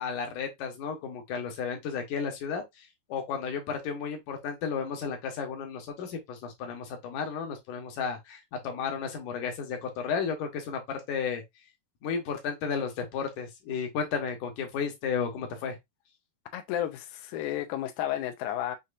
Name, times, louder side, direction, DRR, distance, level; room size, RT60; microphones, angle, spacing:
voice 1, 0.0-11.4 12.0-15.8, left 6 dB, 65° left, 2.4 m, -33 dB
voice 2, 16.5-18.8, left 12 dB, 80° left, 1.8 m, -32 dB
6.7 x 2.8 x 2.5 m
omnidirectional pair, 4.1 m